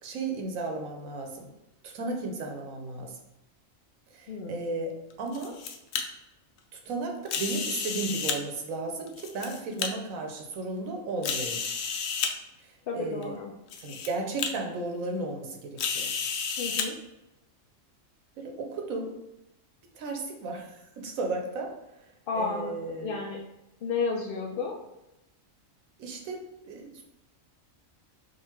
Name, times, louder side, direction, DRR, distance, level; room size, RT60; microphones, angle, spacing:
voice 1, 0.0-1.5 1.8-3.2 4.1-4.9 5.2-5.5 6.7-11.6 12.6-13.4 13.8-16.1 18.4-19.1 19.9-21.7 22.3-23.2 26.0-26.4 26.6-27.0, right 3 dB, 85° right, 2 dB, 1.2 m, -34 dB
voice 2, 4.3-4.6 12.9-13.5 16.6-17.0 22.3-22.7 23.0-23.4 23.8-24.7, left 4 dB, 60° left, -2 dB, 0.6 m, -32 dB
sound 1, 5.1-6.0 7.3-8.4 9.1-9.9 10.5-10.6 11.2-12.3 13.2-13.3 13.7-14.1 14.4-14.5 15.8-16.9, left 6 dB, 85° left, 1.0 m, -31 dB
3.8 x 2.5 x 4.5 m, 0.92 s
omnidirectional pair, 1.4 m